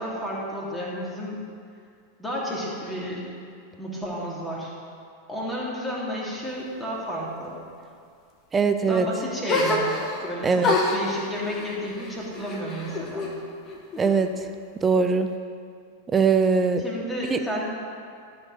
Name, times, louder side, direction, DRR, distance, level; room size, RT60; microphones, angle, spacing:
voice 1, 0.0-1.4 2.2-3.3 3.8-4.7 5.3-7.6 8.9-13.3 16.8-17.7, equal, 10° left, -5 dB, 2.5 m, -32 dB
voice 2, 8.5-9.1 10.4-10.7 14.0-14.3 14.8-15.3 16.1-16.8 17.3-17.4, right 5 dB, 20° right, 8 dB, 0.6 m, -21 dB
sound 1, 9.5-10.3 10.6-13.3 13.7-14.5, left 2 dB, 30° left, 1.4 m, -27 dB
13.0 x 5.3 x 6.6 m, 2.3 s
figure-of-eight pair, 90°, 0 cm